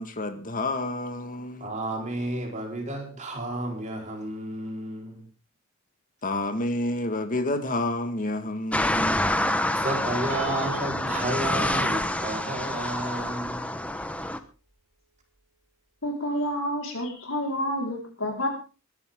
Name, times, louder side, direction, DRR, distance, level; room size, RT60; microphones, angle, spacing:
voice 1, 0.0-1.7 6.2-9.2, left 2 dB, 40° left, 1.9 m, -29 dB
voice 2, 1.6-5.2 9.7-13.7, right 1 dB, 35° right, 4.4 m, -32 dB
sound 1, 8.7-14.4, left 1 dB, 5° left, 1.1 m, -27 dB
Piano, 10.3-13.5, right 4 dB, 65° right, 5.4 m, -43 dB
voice 3, 16.0-18.5, equal, 70° left, 4.7 m, -29 dB
21.5 x 11.5 x 3.8 m
head